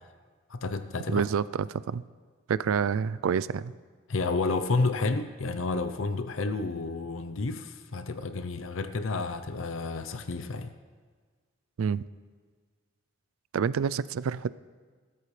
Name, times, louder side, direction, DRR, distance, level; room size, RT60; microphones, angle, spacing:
voice 1, 0.5-1.2 4.1-10.7, left 3 dB, 75° left, 10 dB, 0.6 m, -30 dB
voice 2, 1.1-2.0 2.5-3.7 11.8-12.1 13.5-14.6, right 6 dB, 90° right, 17 dB, 0.4 m, -28 dB
20.0 x 13.5 x 3.3 m, 1.6 s
head